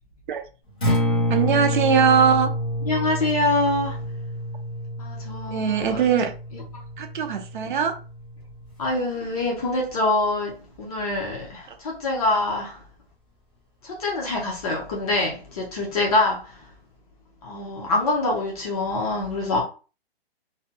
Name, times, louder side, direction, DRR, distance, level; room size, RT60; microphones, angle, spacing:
Acoustic guitar, 0.7-8.9, equal, 10° left, 0.4 m, -28 dB
voice 1, 1.3-2.5 5.5-6.3 7.0-8.0, right 7 dB, 55° right, 0.6 m, -21 dB
voice 2, 2.8-4.0 5.0-6.0 6.5-6.6 8.8-12.8 13.8-16.7 17.4-19.6, left 2 dB, 35° left, 0.8 m, -25 dB
2.6 x 2.2 x 2.7 m
hypercardioid pair, 160°, 31 cm